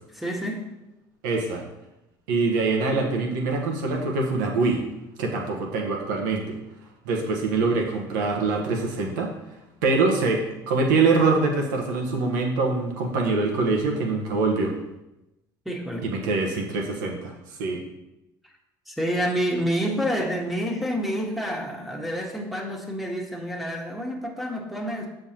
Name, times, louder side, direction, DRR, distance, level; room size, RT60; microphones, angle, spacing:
voice 1, 0.1-0.7 15.6-16.1 18.9-25.1, equal, ahead, 0 dB, 1.4 m, -28 dB
voice 2, 1.2-1.6 2.3-4.8 5.2-6.6 7.0-9.3 9.8-14.7 16.0-17.3 17.6-17.8, right 3 dB, 85° right, 1 dB, 1.1 m, -24 dB
6.9 x 5.6 x 2.9 m, 0.95 s
supercardioid pair, 75°, 10 cm